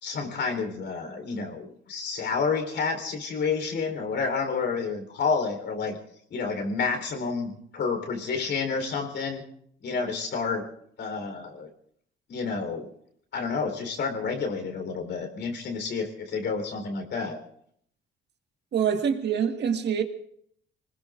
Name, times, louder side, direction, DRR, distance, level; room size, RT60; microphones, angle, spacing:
voice 1, 0.0-6.0 6.3-9.4 9.8-10.7 11.0-11.7 12.3-12.9 13.3-17.4, left 5 dB, 65° left, 4.0 m, -29 dB
voice 2, 18.7-20.0, right 7 dB, 60° right, 1.9 m, -25 dB
26.0 x 20.0 x 2.6 m
cardioid pair, 90°, 20 cm